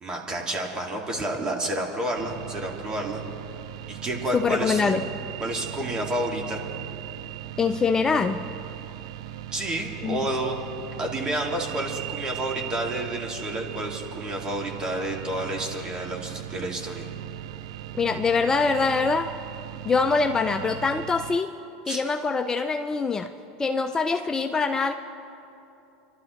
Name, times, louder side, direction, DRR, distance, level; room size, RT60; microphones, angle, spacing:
voice 1, 0.0-3.2 3.9-5.0 5.4-6.6 9.5-17.1 21.9-22.0, right 1 dB, 25° right, 0 dB, 2.2 m, -30 dB
sound 1, 2.1-21.4, right 12 dB, 75° right, 0.3 m, -38 dB
voice 2, 4.3-5.1 7.6-8.5 10.0-10.2 17.9-19.3 19.8-21.5 21.9-23.3 23.6-24.9, left 4 dB, 20° left, 7 dB, 0.4 m, -24 dB
28.0 x 12.5 x 3.1 m, 2.9 s
hypercardioid pair, 105°, 3 cm